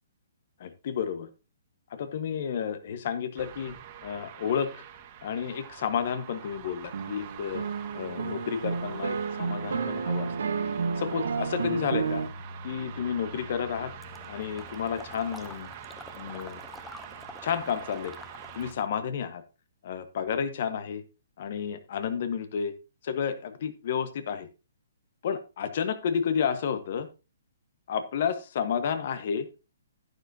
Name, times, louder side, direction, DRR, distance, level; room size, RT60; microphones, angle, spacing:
voice 1, 0.6-1.3 1.9-3.7 4.0-4.8 5.2-7.6 7.9-10.3 11.0-12.2 12.6-13.9 14.3-15.7 16.1-16.6 17.4-18.1 18.5-19.4 19.8-21.0 21.4-22.7 23.0-24.5 25.2-27.1 27.9-29.5, left 7 dB, 55° left, 11 dB, 1.4 m, -31 dB
sound 1, 3.4-18.7, right 6 dB, 35° right, 1.7 m, -44 dB
sound 2, 6.9-12.3, right 5 dB, 80° right, 1.6 m, -31 dB
Water / Liquid, 14.0-18.9, left 3 dB, 5° left, 0.7 m, -48 dB
11.5 x 9.6 x 2.8 m, 0.30 s
hypercardioid pair, 145°, 0 cm